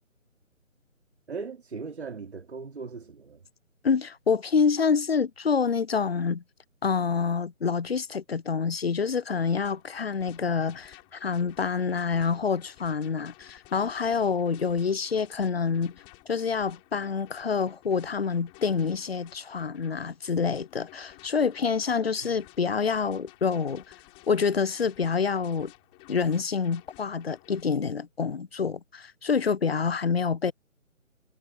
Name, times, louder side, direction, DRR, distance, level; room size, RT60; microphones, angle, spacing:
voice 1, 1.3-3.4, right 5 dB, 50° right, 4.2 m, -38 dB
voice 2, 3.8-6.4 6.8-15.9 16.3-23.8 24.3-25.7 26.1-30.5, left 5 dB, 50° left, 0.6 m, -27 dB
sound 1, 9.4-27.6, left 26 dB, 15° left, 7.1 m, -54 dB
figure-of-eight pair, 160°, 41 cm